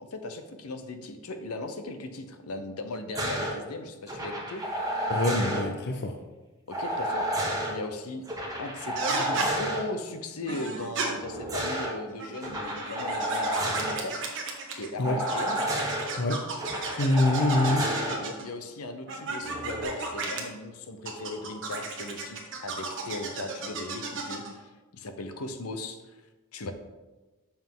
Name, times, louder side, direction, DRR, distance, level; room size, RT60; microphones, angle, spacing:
voice 1, 0.1-4.6 6.7-7.3 7.7-8.2 8.6-14.1 14.7-15.7 17.6-26.0 26.5-26.7, left 2 dB, 80° left, 8 dB, 0.7 m, -38 dB
sound 1, 3.1-3.5 4.1-5.6 6.7-7.7 8.2-9.8 11.1-11.9 12.4-14.0 15.0-16.0 16.6-18.2 19.4-19.8, right 1 dB, 15° right, 1.3 m, -31 dB
voice 2, 5.1-6.1 15.0-15.2 16.2-16.4 17.0-17.8, left 2 dB, 50° left, 5 dB, 0.5 m, -25 dB
sound 2, 8.9-9.5 10.5-11.1 12.1-14.9 15.2-18.5 19.1-20.4 21.0-24.5, right 4 dB, 60° right, 1.2 m, -34 dB
7.0 x 5.7 x 3.7 m, 1.2 s
head